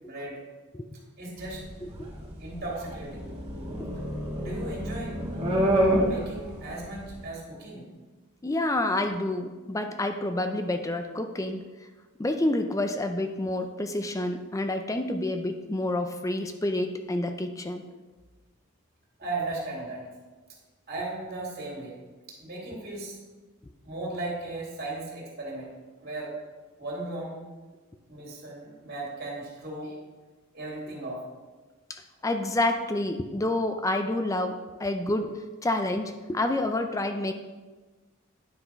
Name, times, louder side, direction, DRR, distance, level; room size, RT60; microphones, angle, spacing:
voice 1, 0.0-0.4 1.2-1.6 2.4-3.2 4.4-5.2 6.0-7.9 19.2-20.0 20.9-21.9 22.3-23.2 23.8-26.4 26.8-27.4 28.1-30.0 30.5-31.3, right 2 dB, 50° right, -3 dB, 2.6 m, -36 dB
sound 1, 1.4-7.2, right 1 dB, 30° right, 1.5 m, -28 dB
voice 2, 1.8-2.1 8.4-11.6 12.2-17.9 31.9-37.3, left 1 dB, 15° left, 7 dB, 0.4 m, -28 dB
9.6 x 5.8 x 4.5 m, 1.3 s
head